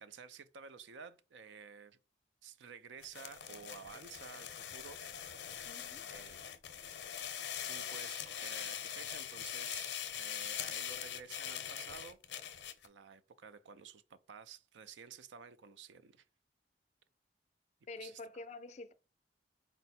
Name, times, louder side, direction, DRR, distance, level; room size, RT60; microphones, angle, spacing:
voice 1, 0.0-2.0 2.4-5.3 6.1-6.4 7.7-12.2 12.8-16.2 18.0-18.2, right 6 dB, 90° right, 0.4 m, -52 dB
sound 1, 3.0-12.9, left 9 dB, 85° left, 0.6 m, -42 dB
voice 2, 5.7-6.0 17.9-18.9, left 3 dB, 40° left, 0.3 m, -47 dB
4.4 x 2.0 x 4.1 m
head